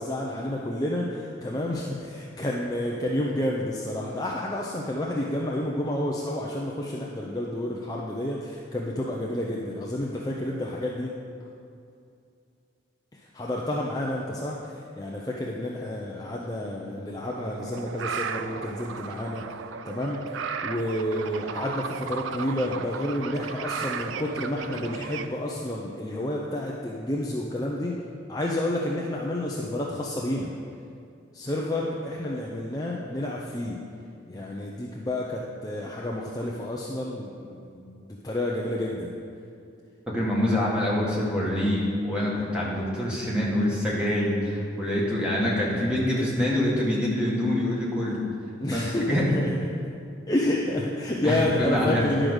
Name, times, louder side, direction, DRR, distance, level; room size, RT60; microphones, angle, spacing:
voice 1, 0.0-11.1 13.1-19.4 19.8-20.2 20.6-28.0 28.3-30.5 31.3-33.8 34.3-39.1 48.6-49.6 50.3-52.3, left 1 dB, 20° left, -3 dB, 0.5 m, -30 dB
sound 1, 17.2-25.3, right 6 dB, 80° right, 0.4 m, -35 dB
voice 2, 40.1-48.2 48.7-49.2 51.2-52.1, left 1 dB, 5° right, -6 dB, 1.6 m, -25 dB
10.5 x 5.1 x 6.2 m, 2.4 s
head